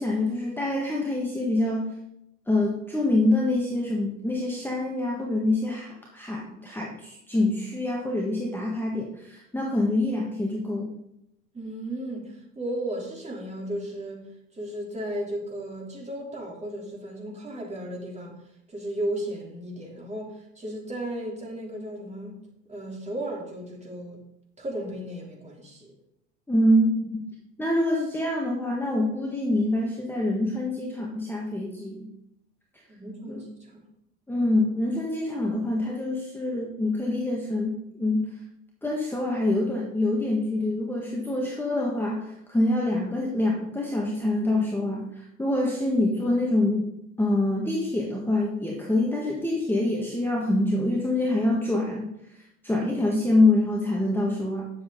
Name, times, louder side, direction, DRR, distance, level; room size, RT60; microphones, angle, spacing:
voice 1, 0.0-1.9 2.5-11.0 26.5-27.2 27.6-32.1 33.3-33.4 34.3-38.2 38.8-46.9 47.2-52.1 52.3-54.7, left 1 dB, 5° left, -2 dB, 1.6 m, -25 dB
voice 2, 11.5-14.2 14.5-18.3 18.7-22.4 22.7-24.2 24.6-25.9 32.9-33.9, right 1 dB, 15° right, -1 dB, 3.2 m, -35 dB
10.0 x 7.3 x 3.8 m, 0.81 s
hypercardioid pair, 85°, 39 cm